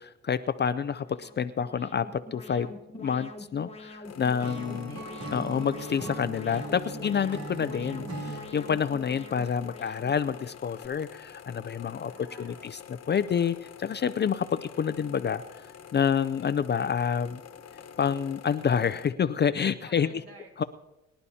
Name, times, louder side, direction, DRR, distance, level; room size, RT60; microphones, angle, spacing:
voice 1, 0.0-2.7 3.0-4.9 5.3-12.1 12.4-12.8 13.1-15.4 15.9-17.4 18.0-20.1 20.6-20.7, left 7 dB, 35° left, 13 dB, 0.5 m, -28 dB
Alarm, 1.0-10.9, left 2 dB, 20° left, 1.2 m, -46 dB
sound 1, 4.0-19.1, left 8 dB, 55° left, 1.2 m, -47 dB
Acoustic guitar / Strum, 4.4-8.5, right 2 dB, 80° right, 3.4 m, -39 dB
voice 2, 4.7-5.8 12.0-12.7 18.6-19.0 19.9-20.7, right 2 dB, 50° right, 0 dB, 5.6 m, -53 dB
23.5 x 11.5 x 2.8 m, 0.98 s
cardioid pair, 90°, 30 cm